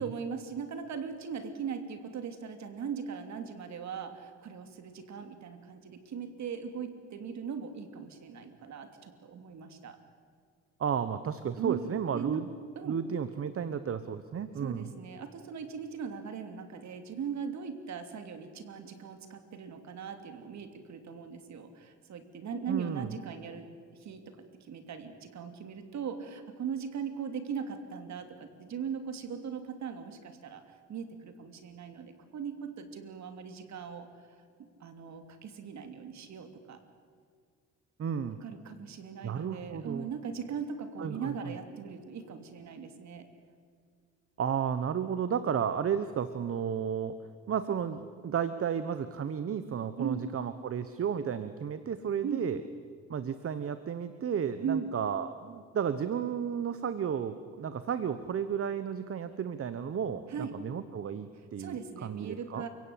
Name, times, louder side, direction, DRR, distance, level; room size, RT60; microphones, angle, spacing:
voice 1, 0.0-10.0 11.6-12.4 12.7-13.0 14.6-23.7 23.9-24.4 24.7-30.6 30.9-34.1 34.8-36.8 38.4-43.3 50.0-50.2 52.2-52.4 54.6-54.9 60.3-60.5 61.6-62.7, right 6 dB, 65° right, 8 dB, 3.0 m, -39 dB
voice 2, 10.8-12.5 12.8-14.9 22.7-23.1 38.0-38.4 39.2-40.1 41.0-41.3 44.4-47.2 47.5-52.6 53.1-62.7, right 7 dB, 50° right, 12 dB, 1.2 m, -33 dB
29.0 x 17.0 x 8.7 m, 2.1 s
cardioid pair, 90°, 30 cm